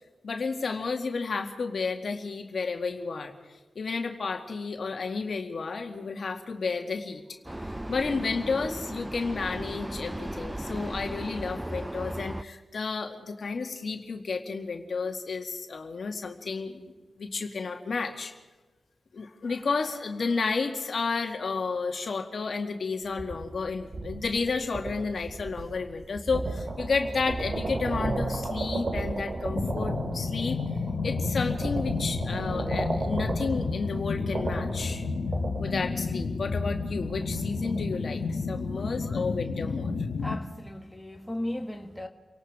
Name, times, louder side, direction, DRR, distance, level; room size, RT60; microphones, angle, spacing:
voice 1, 0.2-3.3 3.8-7.4 7.9-16.9 17.2-18.3 19.1-30.6 31.0-35.0 35.6-39.9, left 4 dB, 60° left, 2.0 m, -31 dB
Vehicle, 7.4-12.4, right 1 dB, 10° right, 0.6 m, -36 dB
sound 1, 23.1-37.9, right 2 dB, 50° right, 2.6 m, -35 dB
sound 2, 29.5-40.4, left 4 dB, 80° left, 1.6 m, -31 dB
voice 2, 38.8-39.2 40.2-42.1, left 1 dB, 10° left, 1.8 m, -36 dB
30.0 x 18.0 x 5.0 m
cardioid pair, 60°, 0 cm